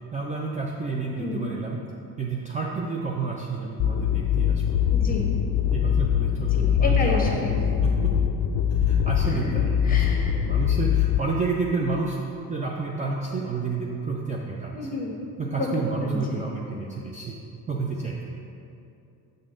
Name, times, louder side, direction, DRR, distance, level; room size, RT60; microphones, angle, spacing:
voice 1, 0.1-1.8 2.2-4.8 5.7-7.2 7.8-8.1 8.8-12.2 12.5-15.0 15.4-17.4 17.7-18.4, right 4 dB, 20° right, -1 dB, 0.4 m, -30 dB
sound 1, 3.8-11.2, left 9 dB, 45° left, 0.4 m, -23 dB
voice 2, 4.9-5.3 6.5-7.6 9.2-9.5 9.8-10.4 14.7-15.1 15.6-16.4, left 2 dB, 20° left, -1 dB, 1.2 m, -30 dB
6.5 x 6.0 x 3.7 m, 2.7 s
cardioid pair, 120°, 40 cm